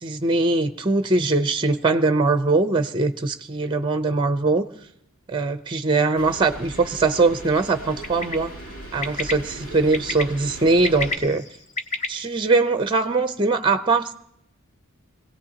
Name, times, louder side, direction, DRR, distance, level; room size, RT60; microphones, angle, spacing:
voice 1, 0.0-4.6 5.3-8.5 8.9-11.4 12.1-14.1, right 3 dB, 20° right, 9 dB, 0.7 m, -21 dB
sound 1, 6.2-11.2, right 1 dB, 75° left, 7.9 m, -38 dB
Bird, 8.0-8.3 9.0-9.3 9.9-10.2 10.7-12.1, left 3 dB, 35° left, 0.9 m, -28 dB
24.5 x 17.0 x 2.9 m, 0.75 s
head